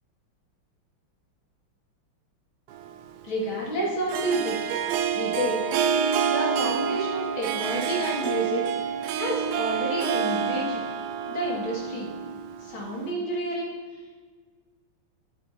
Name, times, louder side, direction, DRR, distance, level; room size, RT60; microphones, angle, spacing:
Harp, 2.7-13.1, right 7 dB, 85° right, 0.8 m, -28 dB
voice 1, 3.2-4.6 5.1-5.6 6.2-8.6 9.1-10.8 11.3-12.1 12.6-13.8, right 1 dB, 75° left, -4 dB, 3.0 m, -30 dB
9.4 x 7.6 x 2.8 m, 1.5 s
omnidirectional pair, 2.3 m